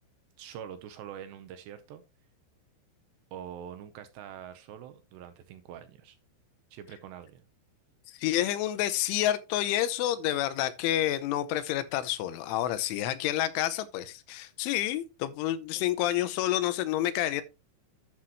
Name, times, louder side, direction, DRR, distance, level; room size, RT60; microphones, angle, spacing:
voice 1, 0.4-2.0 3.3-6.2 6.7-7.4, right 9 dB, 80° right, 2.7 m, -44 dB
voice 2, 8.2-17.4, left 13 dB, 90° left, 3.2 m, -29 dB
11.5 x 7.6 x 3.0 m
omnidirectional pair, 5.6 m